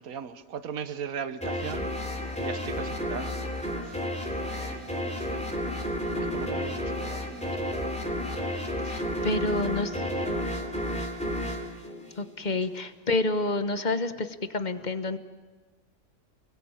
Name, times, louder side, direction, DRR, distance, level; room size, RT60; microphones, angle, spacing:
voice 1, 0.0-2.1 2.4-4.0 4.4-5.5 6.1-7.6 8.8-8.9, right 7 dB, 75° right, 1.5 m, -39 dB
sound 1, 1.4-12.7, equal, 5° left, 3.2 m, -31 dB
voice 2, 8.9-10.0 12.2-15.2, left 2 dB, 35° left, 1.3 m, -29 dB
29.5 x 21.0 x 8.9 m
omnidirectional pair, 1.5 m